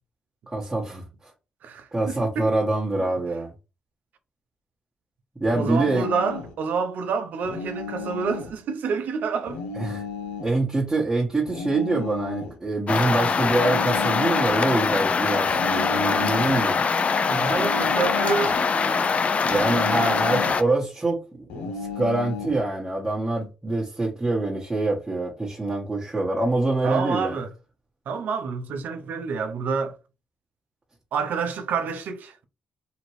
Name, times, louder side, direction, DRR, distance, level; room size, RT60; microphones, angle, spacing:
voice 1, 0.5-1.0 1.9-3.5 5.4-6.1 9.8-10.0 10.4-16.8 19.4-21.7 21.9-27.4, right 2 dB, 20° right, 1.2 m, -25 dB
voice 2, 1.6-2.6 3.0-3.1 5.6-9.6 17.2-19.1 19.9-20.2 20.5-20.6 26.8-27.5 28.1-30.0 31.1-32.4, right 5 dB, 70° right, 0.6 m, -28 dB
sound 1, 5.4-6.6 7.4-8.6 9.5-10.6 11.5-12.6 13.5-14.6 15.5-16.6 17.5-18.6 19.5-20.6 21.5-22.6, left 5 dB, 90° left, 0.7 m, -34 dB
sound 2, 12.9-20.6, left 5 dB, 45° left, 0.4 m, -23 dB
2.9 x 2.5 x 3.1 m
supercardioid pair, 60°, 3 cm